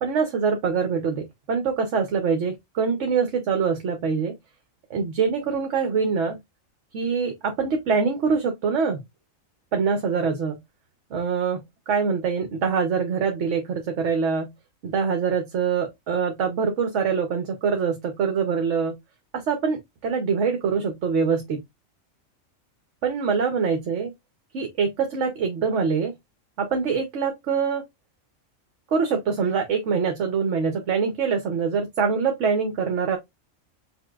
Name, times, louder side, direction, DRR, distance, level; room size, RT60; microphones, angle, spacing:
voice 1, 0.0-4.3 4.9-6.4 6.9-9.0 9.7-10.5 11.1-11.6 11.9-14.5 14.8-19.0 19.3-21.6 23.0-24.1 24.5-26.1 26.6-27.8 28.9-33.2, right 5 dB, 65° right, 1.1 m, -24 dB
5.6 x 2.8 x 2.3 m
omnidirectional pair, 1.4 m